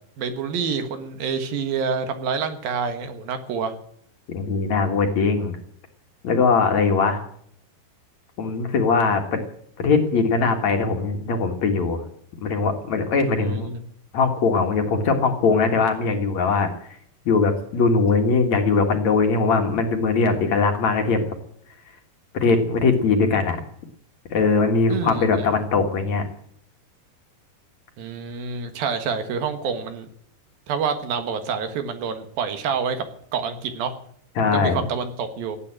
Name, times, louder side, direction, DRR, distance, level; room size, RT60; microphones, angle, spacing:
voice 1, 0.2-3.7 13.4-13.8 24.9-25.5 28.0-30.1 30.7-33.1 33.3-33.9 34.4-35.6, right 6 dB, 70° right, 8 dB, 3.3 m, -27 dB
voice 2, 4.3-5.6 6.2-7.2 8.4-9.4 9.8-12.0 12.4-13.7 14.1-16.7 17.3-21.2 22.3-23.6 24.3-26.2 34.4-34.8, left 4 dB, 55° left, 4 dB, 2.6 m, -21 dB
17.5 x 9.2 x 8.8 m, 0.65 s
omnidirectional pair, 4.5 m